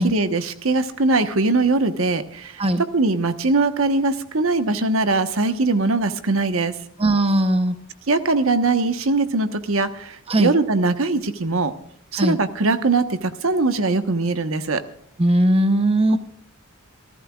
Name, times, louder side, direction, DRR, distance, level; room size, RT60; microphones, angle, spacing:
voice 1, 0.0-2.6 2.9-6.7 8.1-11.7 12.1-14.8, right 3 dB, 70° right, 9 dB, 1.2 m, -21 dB
voice 2, 7.0-7.8 10.3-10.5 12.1-12.4 15.2-16.2, right 1 dB, 25° right, 9 dB, 0.9 m, -19 dB
26.5 x 15.5 x 2.4 m, 0.64 s
head